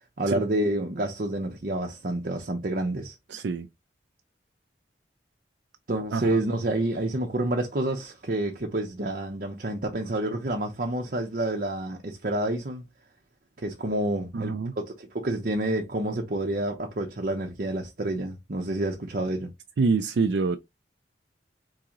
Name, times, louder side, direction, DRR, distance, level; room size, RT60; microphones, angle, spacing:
voice 1, 0.2-3.2 5.9-12.8 13.6-19.5, right 1 dB, 55° right, 0.8 m, -28 dB
voice 2, 3.3-3.7 6.1-6.2 14.3-14.7 19.8-20.6, right 4 dB, 80° right, 0.4 m, -25 dB
4.7 x 3.8 x 2.9 m
head